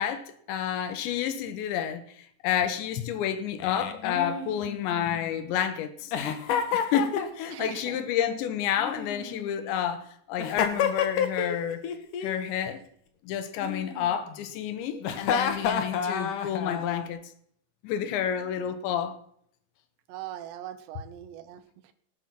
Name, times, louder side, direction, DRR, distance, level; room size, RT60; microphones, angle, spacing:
voice 1, 0.0-2.0 2.4-6.1 6.7-11.8 12.2-12.8 13.3-17.2 17.8-19.2, left 9 dB, 75° left, 3.4 m, -30 dB
Giggle, 3.6-5.4 6.1-7.7 8.8-9.7 10.4-11.6 11.8-12.4 13.6-14.4 15.0-17.1, left 7 dB, 60° left, 2.4 m, -30 dB
voice 2, 7.5-8.0 20.1-21.9, right 12 dB, 75° right, 3.2 m, -40 dB
18.5 x 9.2 x 6.0 m
omnidirectional pair, 5.3 m